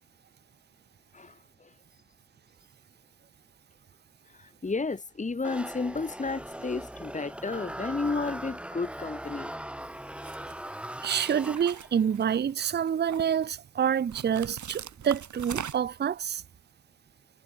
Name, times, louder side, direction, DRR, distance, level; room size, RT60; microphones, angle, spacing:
voice 1, 1.1-1.7 4.3-9.5, left 3 dB, 25° left, 2.6 m, -32 dB
sound 1, 5.4-12.1, right 1 dB, 5° right, 1.2 m, -40 dB
sound 2, 10.2-10.5 11.0-12.5 12.9-13.5 14.1-16.0, right 8 dB, 65° right, 2.1 m, -40 dB
voice 2, 11.0-16.4, right 8 dB, 35° right, 0.5 m, -27 dB
wide cardioid pair, 165°, 31 cm